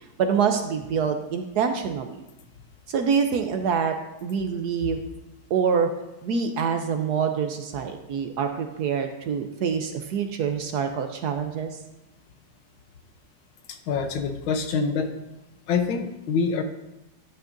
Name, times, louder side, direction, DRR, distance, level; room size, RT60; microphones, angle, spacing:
voice 1, 0.2-2.2 2.9-4.0 4.2-5.0 5.5-5.9 6.2-11.8, right 6 dB, 65° right, 6 dB, 1.1 m, -25 dB
voice 2, 13.7-15.1 15.7-16.6, left 5 dB, 85° left, 7 dB, 1.7 m, -25 dB
12.0 x 8.8 x 2.6 m, 0.95 s
omnidirectional pair, 2.1 m